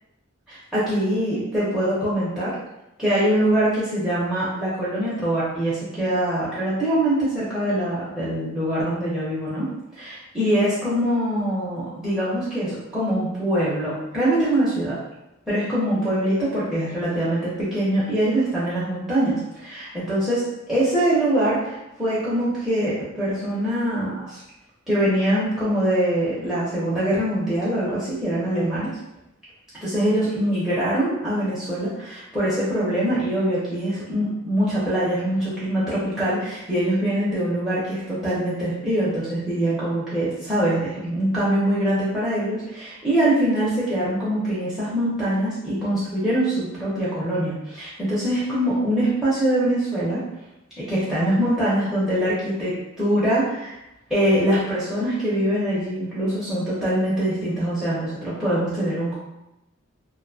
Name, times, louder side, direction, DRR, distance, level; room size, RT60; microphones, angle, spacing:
voice 1, 0.5-2.5 3.0-15.0 15.5-24.4 24.9-28.9 29.8-50.2 50.8-53.8 54.1-59.1, right 1 dB, 5° right, -10 dB, 0.6 m, -23 dB
2.5 x 2.2 x 2.6 m, 0.90 s
head